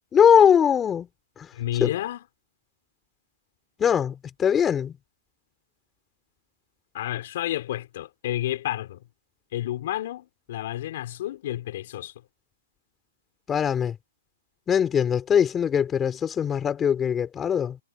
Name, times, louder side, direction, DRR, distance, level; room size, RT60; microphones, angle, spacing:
voice 1, 0.1-1.1 1.4-1.5 1.8-1.9 3.8-5.0 13.5-14.0 14.7-17.8, left 8 dB, 15° left, 4.7 m, -21 dB
voice 2, 1.5-2.2 6.9-9.0 9.5-12.1, left 13 dB, 55° left, 4.8 m, -30 dB
hypercardioid pair, 145°, 0 cm